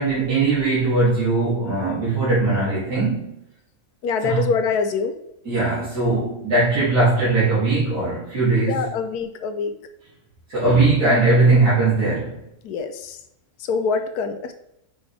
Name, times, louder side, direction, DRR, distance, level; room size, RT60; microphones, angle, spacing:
voice 1, 0.0-3.4 4.2-4.4 5.5-8.8 10.5-12.4, right 3 dB, 75° right, -10 dB, 2.9 m, -19 dB
voice 2, 4.0-5.2 8.7-9.7 12.6-13.2 13.6-14.5, left 5 dB, 80° left, 8 dB, 1.2 m, -24 dB
5.9 x 5.5 x 3.3 m, 0.83 s
omnidirectional pair, 1.6 m